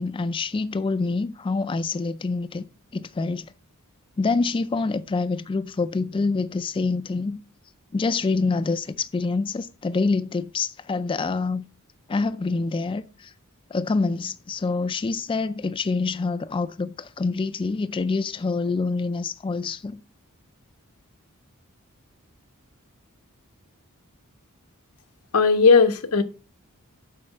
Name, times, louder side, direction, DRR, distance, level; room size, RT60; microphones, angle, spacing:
voice 1, 0.0-2.7 2.9-3.5 4.2-7.4 7.9-11.7 12.1-13.3 13.7-20.0, left 3 dB, 25° left, 0.3 m, -26 dB
voice 2, 25.3-26.2, left 4 dB, 85° left, 0.9 m, -17 dB
7.5 x 4.8 x 5.4 m
head